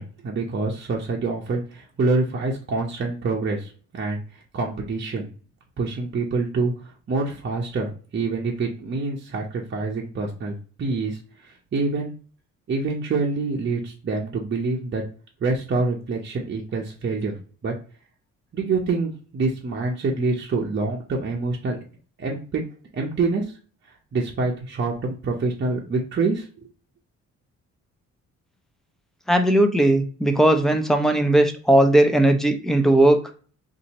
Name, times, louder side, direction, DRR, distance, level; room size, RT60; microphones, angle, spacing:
voice 1, 0.0-4.2 4.5-5.3 5.8-12.1 12.7-15.0 15.4-17.4 17.6-17.7 18.5-21.8 22.2-22.6 22.9-23.5 24.1-26.7, right 3 dB, 40° right, -2 dB, 0.8 m, -26 dB
voice 2, 29.3-33.2, right 1 dB, ahead, 5 dB, 0.6 m, -18 dB
2.8 x 2.7 x 4.0 m, 0.39 s
cardioid pair, 90°, 30 cm